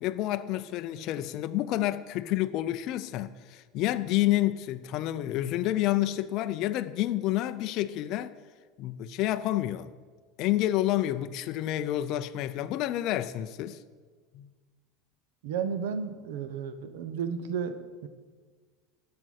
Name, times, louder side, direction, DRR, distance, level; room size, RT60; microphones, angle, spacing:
voice 1, 0.0-8.3 8.8-9.9 10.4-13.8 14.3-14.5, left 14 dB, 40° left, 0.4 m, -29 dB
voice 2, 15.4-18.1, right 6 dB, 80° right, 0.9 m, -33 dB
12.5 x 7.7 x 6.4 m
supercardioid pair, 165°, 0 cm